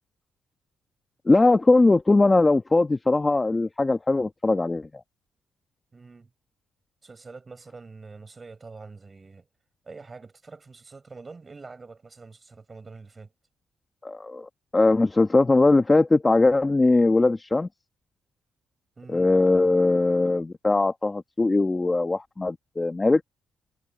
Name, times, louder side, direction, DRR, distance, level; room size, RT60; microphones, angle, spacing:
voice 1, 1.2-5.0 14.0-17.7 19.1-23.2, left 2 dB, 20° left, 1.4 m, -20 dB
voice 2, 5.9-6.3 7.0-9.4 9.8-13.3 19.0-19.3, right 4 dB, 30° right, 5.3 m, -45 dB
cardioid pair, 90°, 0 cm